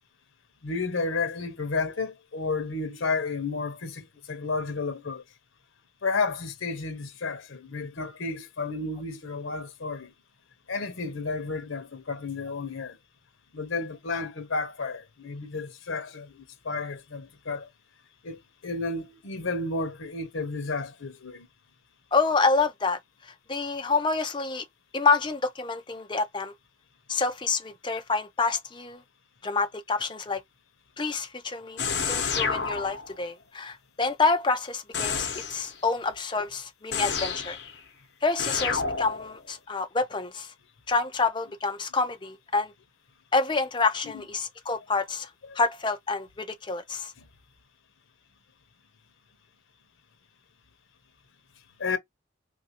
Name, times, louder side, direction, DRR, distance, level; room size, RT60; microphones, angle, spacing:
voice 1, 0.6-5.2 6.0-10.1 10.7-13.0 13.5-17.7 18.2-21.5 51.8-52.0, left 3 dB, 80° left, 0.8 m, -32 dB
voice 2, 22.1-24.6 24.9-26.5 27.1-29.0 29.4-30.4 31.0-31.8 32.1-37.6 38.2-40.5 40.9-42.7 43.3-45.3 45.5-47.1, left 4 dB, 25° left, 0.6 m, -27 dB
sound 1, 31.8-33.2 34.9-35.7 36.9-37.8 38.4-39.5, left 5 dB, 55° left, 1.0 m, -30 dB
3.1 x 2.6 x 2.9 m
head